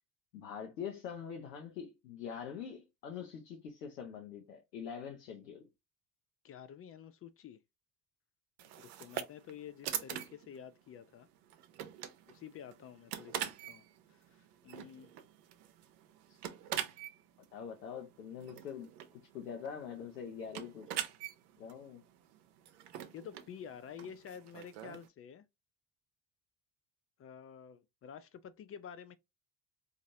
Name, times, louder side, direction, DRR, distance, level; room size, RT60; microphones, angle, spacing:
voice 1, 0.3-5.7 16.3-16.4 17.5-18.9 19.3-20.9 21.6-22.0, left 7 dB, 85° left, 0.7 m, -44 dB
voice 2, 6.4-7.6 8.8-11.3 12.3-15.1 23.1-25.5 27.2-29.2, left 8 dB, 30° left, 0.4 m, -50 dB
sound 1, 8.6-25.1, right 10 dB, 70° right, 0.7 m, -44 dB
3.8 x 2.5 x 2.6 m
figure-of-eight pair, 55°, 49 cm